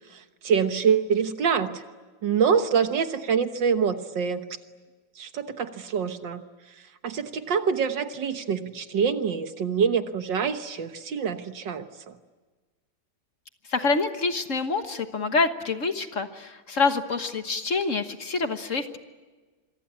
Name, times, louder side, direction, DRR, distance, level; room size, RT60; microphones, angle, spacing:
voice 1, 0.1-1.8 2.2-4.4 5.2-6.4 7.0-12.1, right 6 dB, 65° right, 9 dB, 1.9 m, -25 dB
voice 2, 13.7-19.0, left 4 dB, 45° left, 8 dB, 1.5 m, -26 dB
26.5 x 24.0 x 8.6 m, 1.4 s
omnidirectional pair, 2.2 m